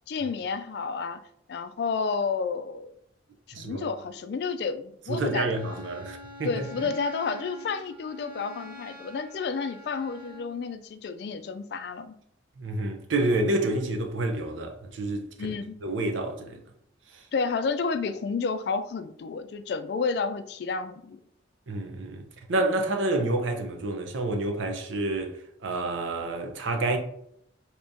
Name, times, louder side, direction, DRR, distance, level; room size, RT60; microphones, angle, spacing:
voice 1, 0.1-1.2 1.5-2.9 3.6-5.6 6.4-12.2 15.4-15.8 17.3-21.2, left 5 dB, 60° left, 0.3 m, -31 dB
voice 2, 3.5-3.9 5.1-6.9 12.6-15.6 15.8-16.6 21.7-25.4 25.6-27.0, right 2 dB, 90° right, 0.6 m, -29 dB
Bowed string instrument, 5.1-10.6, left 1 dB, 65° right, 1.3 m, -45 dB
3.5 x 2.9 x 2.6 m
head